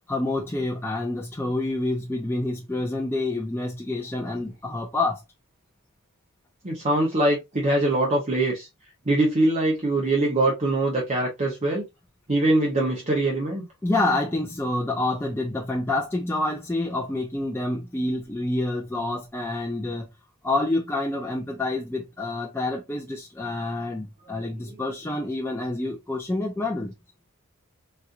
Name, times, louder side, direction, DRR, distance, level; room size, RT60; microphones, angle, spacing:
voice 1, 0.1-5.2 13.8-20.1 20.4-26.9, left 2 dB, 10° left, 0.5 m, -27 dB
voice 2, 6.6-8.7 9.1-11.8 12.3-13.6 24.6-24.7, right 2 dB, 35° right, 0.8 m, -23 dB
4.2 x 2.5 x 2.5 m
head